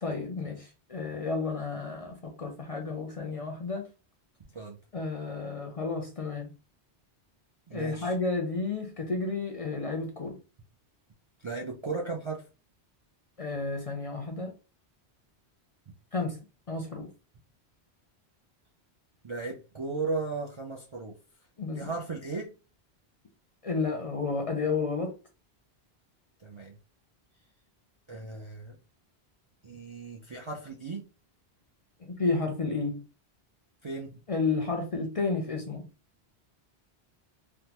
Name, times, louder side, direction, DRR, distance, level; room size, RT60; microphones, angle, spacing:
voice 1, 0.0-3.9 4.9-6.5 7.7-10.4 13.4-14.5 16.1-16.4 16.7-17.1 21.6-21.9 23.6-25.1 32.0-33.0 34.3-35.8, left 4 dB, 45° left, 0.5 m, -31 dB
voice 2, 7.7-8.1 11.4-12.5 19.2-21.2 21.7-22.5 26.4-26.7 28.1-28.8 29.6-31.1 33.8-34.2, right 3 dB, 45° right, 0.4 m, -36 dB
3.4 x 2.1 x 2.9 m
omnidirectional pair, 1.1 m